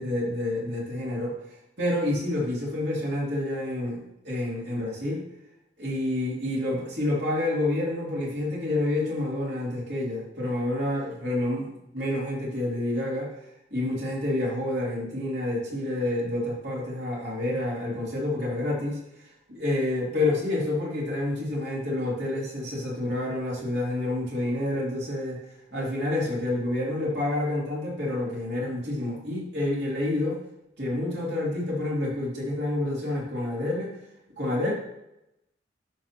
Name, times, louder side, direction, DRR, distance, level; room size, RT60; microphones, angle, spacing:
voice 1, 0.0-1.3 1.8-5.2 5.8-13.3 13.7-25.4 25.7-30.4 30.8-33.9 34.4-34.7, left 1 dB, 60° right, -5 dB, 3.0 m, -28 dB
11.5 x 6.0 x 3.0 m, 0.86 s
head